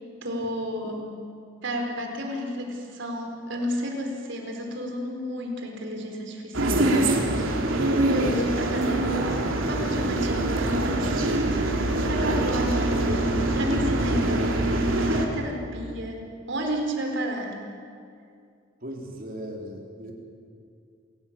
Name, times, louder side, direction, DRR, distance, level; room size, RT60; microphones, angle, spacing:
voice 1, 0.2-1.1 1.6-9.1 9.7-17.6, equal, 65° right, 2 dB, 4.3 m, -32 dB
sound 1, 6.5-15.3, right 1 dB, 85° right, 3.2 m, -24 dB
voice 2, 18.8-20.1, equal, 45° right, 1 dB, 3.9 m, -37 dB
27.0 x 17.0 x 8.8 m, 2.4 s
head